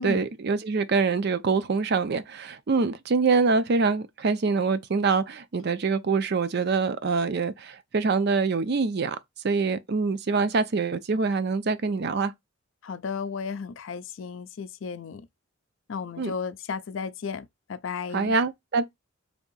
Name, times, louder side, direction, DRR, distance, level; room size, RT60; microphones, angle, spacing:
voice 1, 0.0-9.2 9.4-12.3 16.2-16.3 18.1-18.8, right 4 dB, 50° right, 0.5 m, -25 dB
voice 2, 12.8-15.3 15.9-18.4, left 5 dB, 65° left, 0.4 m, -34 dB
3.5 x 2.7 x 3.9 m
head